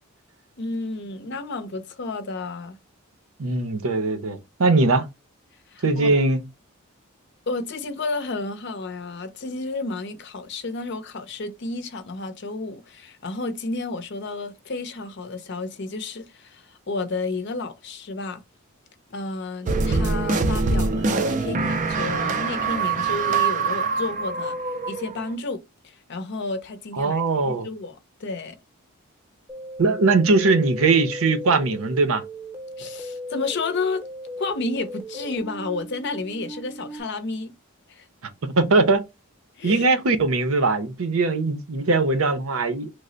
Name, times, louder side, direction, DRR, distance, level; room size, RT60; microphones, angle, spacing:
voice 1, 0.6-2.8 5.7-6.1 7.5-18.4 19.1-24.6 24.9-28.6 32.8-34.0 34.4-37.5 37.9-38.1 39.6-39.9, left 3 dB, 50° left, 0.6 m, -31 dB
voice 2, 3.4-5.1 5.8-6.4 27.0-27.7 29.8-32.2 38.4-39.0 39.6-42.9, right 3 dB, 70° right, 0.6 m, -20 dB
sound 1, 19.7-25.3, right 4 dB, 35° right, 0.4 m, -24 dB
sound 2, 29.5-37.0, equal, 10° right, 0.7 m, -37 dB
3.2 x 2.1 x 3.8 m
head